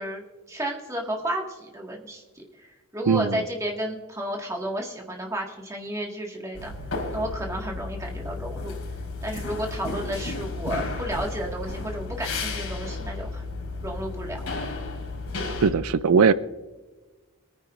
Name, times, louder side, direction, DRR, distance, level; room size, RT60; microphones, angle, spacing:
voice 1, 0.0-6.7 7.1-8.8 9.2-13.4 13.8-14.4, right 1 dB, 15° right, 0 dB, 1.8 m, -32 dB
voice 2, 3.1-3.4 15.6-16.3, right 5 dB, 80° right, 15 dB, 0.4 m, -19 dB
sound 1, 6.5-15.7, left 3 dB, 80° left, 4.1 m, -33 dB
24.0 x 9.8 x 2.5 m, 1.2 s
head